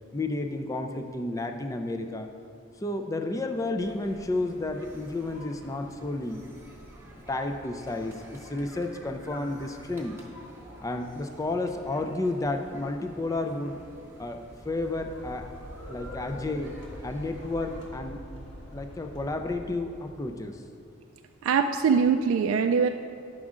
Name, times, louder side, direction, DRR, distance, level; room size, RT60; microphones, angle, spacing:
voice 1, 0.1-2.3 2.8-6.4 7.3-10.2 10.8-13.8 14.2-15.5 15.9-18.2 18.7-20.6, left 2 dB, 15° left, 6 dB, 0.3 m, -31 dB
sound 1, 3.8-17.9, equal, 10° right, 1.0 m, -49 dB
sound 2, 14.3-20.3, left 1 dB, 60° left, 1.5 m, -44 dB
voice 2, 21.4-22.9, right 6 dB, 80° right, 6 dB, 0.3 m, -22 dB
9.6 x 6.2 x 3.7 m, 2.5 s
head